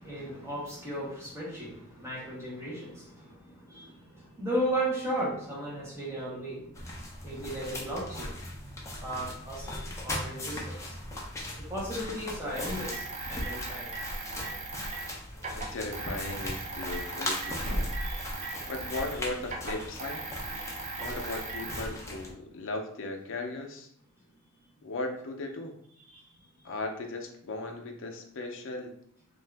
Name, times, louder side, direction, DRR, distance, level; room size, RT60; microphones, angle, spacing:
voice 1, 0.0-6.9 7.2-8.3 9.0-11.0 11.6-13.9 18.0-18.2 26.1-26.2, right 1 dB, 10° right, -6 dB, 1.0 m, -35 dB
sound 1, 6.7-22.3, left 1 dB, 15° left, 0.5 m, -39 dB
sound 2, 12.5-19.2 19.4-21.8, right 3 dB, 35° right, 0.5 m, -39 dB
sound 3, 13.9-14.0 14.9-15.8 16.7-19.0 19.3-19.4 21.0-21.1, equal, 70° right, 0.9 m, -38 dB
voice 2, 15.5-17.9 18.7-20.3 21.0-23.9 24.8-25.8 26.6-28.9, left 2 dB, 60° left, 4 dB, 0.5 m, -37 dB
2.7 x 2.4 x 3.3 m, 0.70 s
head